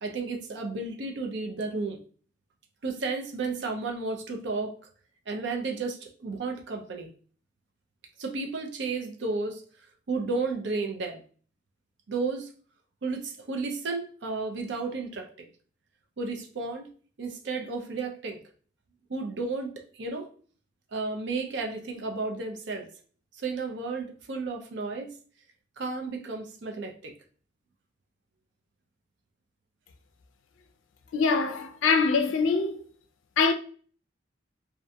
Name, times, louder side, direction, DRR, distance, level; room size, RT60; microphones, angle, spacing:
voice 1, 0.0-2.0 2.8-4.7 5.3-7.1 8.2-9.6 10.1-11.2 12.1-12.5 13.0-15.3 16.2-16.9 17.2-18.4 19.1-20.3 20.9-22.9 23.4-25.1 25.8-27.1, right 3 dB, 60° right, 0.5 m, -32 dB
voice 2, 31.1-32.8 33.4-33.5, left 4 dB, 75° left, 0.4 m, -24 dB
2.5 x 2.2 x 2.6 m
head